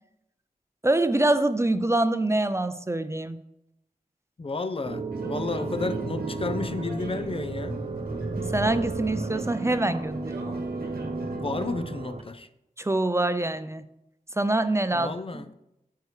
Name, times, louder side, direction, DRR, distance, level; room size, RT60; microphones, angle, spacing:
voice 1, 0.8-3.4 8.4-10.5 12.8-13.8 14.4-15.4, right 2 dB, 20° right, 11 dB, 0.5 m, -25 dB
voice 2, 4.4-7.8 11.4-12.5 14.9-15.5, left 3 dB, 40° left, 10 dB, 0.6 m, -32 dB
sound 1, 4.8-12.2, right 4 dB, 45° right, 0.8 m, -33 dB
sound 2, 5.1-11.7, right 1 dB, 90° right, 1.5 m, -39 dB
9.5 x 8.1 x 3.3 m, 0.85 s
cardioid pair, 55°, 15 cm